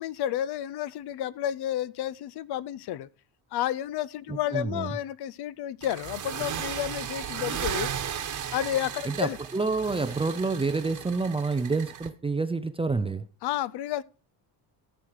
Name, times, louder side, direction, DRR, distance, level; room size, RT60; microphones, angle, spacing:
voice 1, 0.0-3.1 3.5-8.1 8.5-9.4 13.4-14.0, left 12 dB, 55° left, 0.6 m, -31 dB
voice 2, 4.3-4.9 9.0-13.3, right 3 dB, 15° right, 0.4 m, -28 dB
sound 1, 5.8-12.1, right 8 dB, 40° right, 1.3 m, -35 dB
13.5 x 6.4 x 4.6 m
cardioid pair, 140°, 47 cm